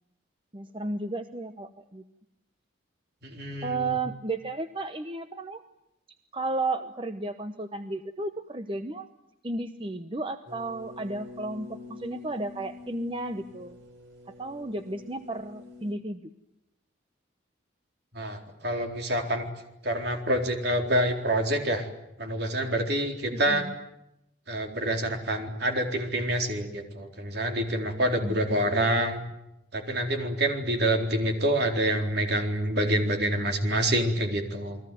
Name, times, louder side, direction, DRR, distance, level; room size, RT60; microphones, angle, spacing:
voice 1, 0.5-2.0 3.6-5.6 6.3-9.1 9.4-13.8 14.4-16.2 23.3-23.7 28.2-28.4 28.6-29.0, right 2 dB, 25° right, 9 dB, 1.0 m, -33 dB
voice 2, 3.2-4.0 18.1-19.5 19.8-21.9 22.2-23.6 24.5-29.2 29.7-34.8, right 1 dB, 55° right, 4 dB, 4.1 m, -27 dB
sound 1, 10.5-15.9, left 3 dB, 85° right, 4.7 m, -46 dB
29.5 x 21.0 x 9.4 m, 0.85 s
head